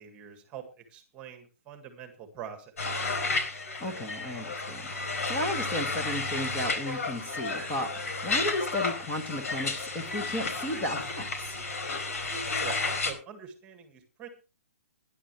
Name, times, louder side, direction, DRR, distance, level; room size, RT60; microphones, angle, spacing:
voice 1, 0.0-3.1 12.6-14.3, right 8 dB, 15° right, 7 dB, 1.8 m, -45 dB
sound 1, 2.8-13.1, left 3 dB, 80° left, 4.6 m, -32 dB
voice 2, 3.8-11.6, left 1 dB, 10° left, 3 dB, 1.6 m, -34 dB
20.0 x 10.5 x 3.1 m, 0.31 s
hypercardioid pair, 175°, 8 cm